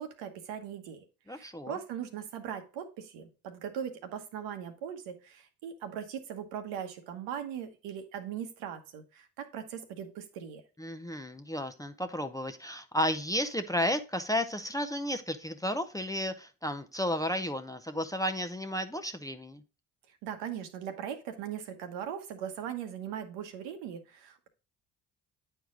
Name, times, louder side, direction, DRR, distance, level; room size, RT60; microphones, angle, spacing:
voice 1, 0.0-10.6 20.2-24.5, right 9 dB, 70° right, 7 dB, 1.1 m, -40 dB
voice 2, 1.3-1.8 10.8-19.6, left 1 dB, 10° left, 8 dB, 0.7 m, -33 dB
9.0 x 4.6 x 3.7 m, 0.32 s
hypercardioid pair, 50°, 45 cm